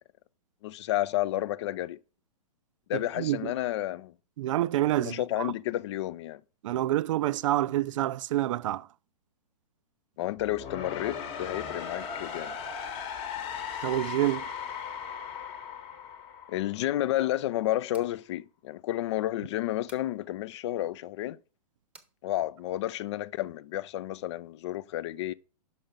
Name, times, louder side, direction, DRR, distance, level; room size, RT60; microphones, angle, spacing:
voice 1, 0.6-2.0 2.9-4.1 5.0-6.4 10.2-12.6 16.5-21.4 22.2-25.3, left 14 dB, 45° left, 0.4 m, -31 dB
voice 2, 2.9-3.5 4.4-5.5 6.6-8.9 13.8-14.5, right 14 dB, 50° right, 0.4 m, -28 dB
sound 1, 10.4-17.3, left 7 dB, 25° left, 1.0 m, -38 dB
sound 2, 17.9-18.2 19.9-20.1 21.9-22.2, right 3 dB, 5° right, 0.9 m, -54 dB
5.9 x 5.5 x 5.1 m
hypercardioid pair, 125°, 21 cm